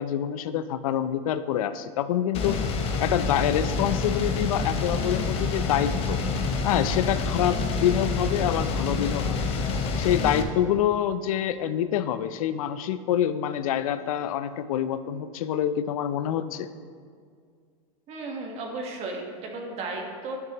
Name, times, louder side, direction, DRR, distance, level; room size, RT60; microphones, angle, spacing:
voice 1, 0.0-2.6 3.0-6.2 6.6-9.5 10.0-16.7, left 10 dB, 80° left, 13 dB, 0.5 m, -26 dB
sound 1, 2.3-10.4, left 4 dB, 35° left, 0.8 m, -27 dB
voice 2, 18.1-20.4, right 2 dB, 35° right, 1 dB, 1.4 m, -34 dB
12.0 x 6.0 x 3.0 m, 2.1 s
supercardioid pair, 135°, 18 cm